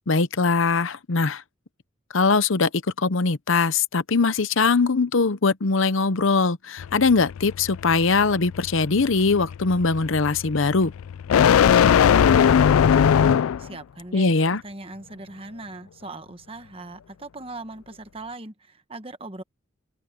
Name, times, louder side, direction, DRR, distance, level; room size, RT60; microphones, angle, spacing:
voice 1, 0.1-1.4 2.1-2.7 3.0-10.9 14.1-14.6, left 4 dB, 70° left, 0.8 m, -21 dB
sound 1, 6.8-13.7, left 8 dB, 85° left, 0.4 m, -20 dB
voice 2, 11.6-14.3 14.6-19.4, right 2 dB, 25° right, 1.2 m, -40 dB
open air
head